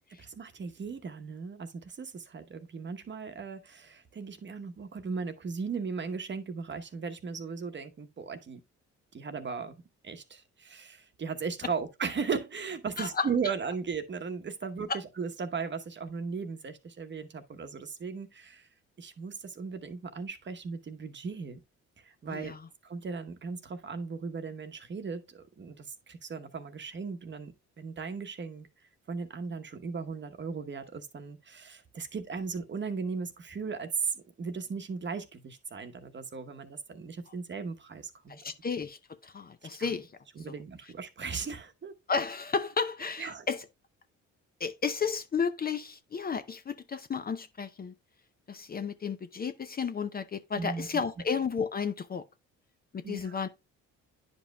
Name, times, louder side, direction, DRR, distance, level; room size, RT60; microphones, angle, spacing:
voice 1, 0.0-8.6 9.1-9.8 10.0-18.7 19.0-21.6 22.0-22.5 22.8-28.7 29.1-38.4 39.8-39.9 40.4-41.9 43.2-43.5 50.6-50.9 53.0-53.5, right 5 dB, 40° right, 1.0 m, -37 dB
voice 2, 13.0-13.3 14.9-15.0 22.3-22.6 38.3-39.0 39.2-40.1 40.5-40.6 42.1-43.6 44.6-47.9 48.5-52.2 52.9-53.5, left 5 dB, 30° left, 0.5 m, -32 dB
9.9 x 5.2 x 2.2 m
cardioid pair, 90°, 30 cm